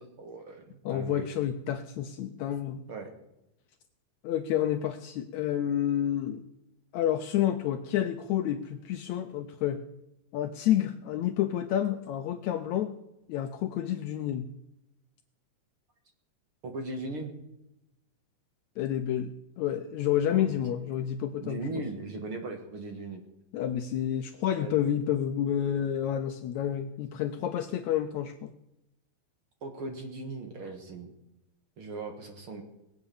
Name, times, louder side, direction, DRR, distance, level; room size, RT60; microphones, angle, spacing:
voice 1, 0.0-1.3 2.9-3.1 16.6-17.3 20.3-20.9 21.4-23.2 24.6-24.8 29.6-31.1 31.8-32.6, right 2 dB, 45° right, 4 dB, 2.2 m, -38 dB
voice 2, 0.9-2.8 4.2-6.4 6.9-9.8 10.3-12.9 13.3-14.5 18.8-19.3 19.6-21.6 23.5-28.5, left 11 dB, 75° left, 9 dB, 1.8 m, -29 dB
20.0 x 8.0 x 7.0 m, 0.88 s
omnidirectional pair, 3.8 m